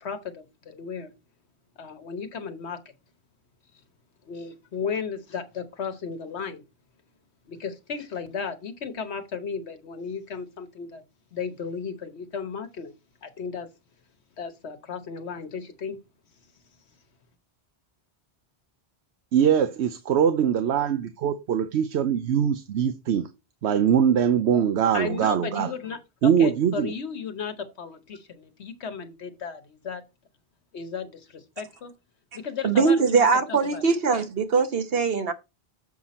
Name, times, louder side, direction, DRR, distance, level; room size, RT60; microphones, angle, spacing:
voice 1, 0.0-1.1 1.8-2.8 4.3-6.6 7.5-11.0 11.3-12.9 13.2-13.7 14.4-16.0 24.9-30.0 30.7-31.9 32.3-33.8, left 5 dB, 80° left, 1.3 m, -34 dB
voice 2, 19.3-23.3 23.6-25.7 26.2-26.9, right 8 dB, 80° right, 1.0 m, -22 dB
voice 3, 32.6-35.3, right 5 dB, 60° right, 1.2 m, -21 dB
7.2 x 5.7 x 4.2 m
omnidirectional pair, 1.1 m